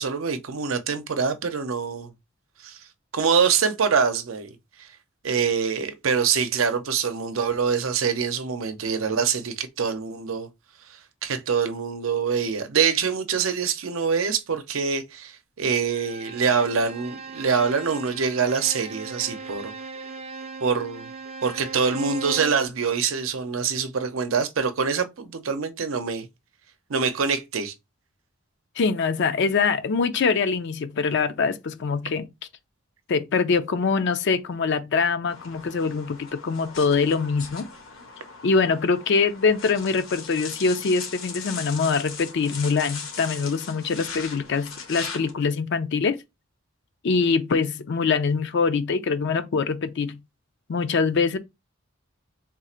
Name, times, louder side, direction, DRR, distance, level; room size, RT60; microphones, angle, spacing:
voice 1, 0.0-2.1 2.6-2.9 3.1-4.9 5.2-10.5 10.9-19.7 20.6-21.1 21.4-26.3 26.9-27.7, right 6 dB, 90° right, 0.6 m, -25 dB
Bowed string instrument, 15.9-22.7, right 4 dB, 30° right, 0.4 m, -38 dB
voice 2, 28.8-32.3 33.1-37.7 38.4-46.2 47.0-50.2 50.7-51.4, left 5 dB, 60° left, 0.4 m, -24 dB
sound 1, 35.3-45.3, left 5 dB, 90° left, 1.4 m, -39 dB
3.6 x 2.4 x 4.2 m
head